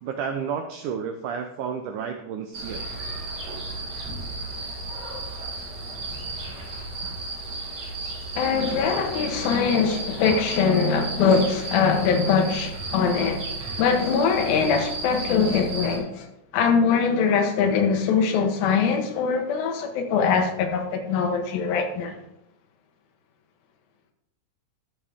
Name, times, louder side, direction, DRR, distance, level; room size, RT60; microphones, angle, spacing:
voice 1, 0.0-2.8, right 7 dB, 85° right, 1.8 m, -31 dB
sound 1, 2.5-16.0, right 2 dB, 35° right, 2.0 m, -34 dB
voice 2, 8.4-13.5 13.8-16.3 16.5-22.2, left 5 dB, 75° left, 2.8 m, -22 dB
13.0 x 6.3 x 3.5 m
omnidirectional pair, 4.4 m